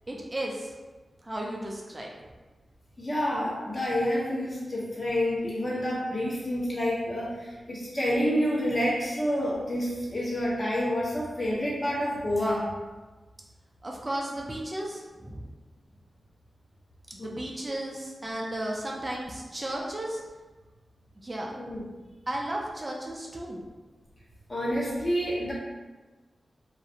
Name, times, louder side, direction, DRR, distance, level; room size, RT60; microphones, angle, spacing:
voice 1, 0.1-0.7 1.2-2.1 13.8-15.5 17.1-20.2 21.2-21.5 22.3-23.6, right 1 dB, 30° right, -2 dB, 0.4 m, -34 dB
voice 2, 3.0-12.7 17.2-17.3 21.5-21.8 24.5-25.5, equal, 40° left, -6 dB, 0.9 m, -28 dB
2.4 x 2.0 x 2.7 m, 1.2 s
cardioid pair, 60°, 0 cm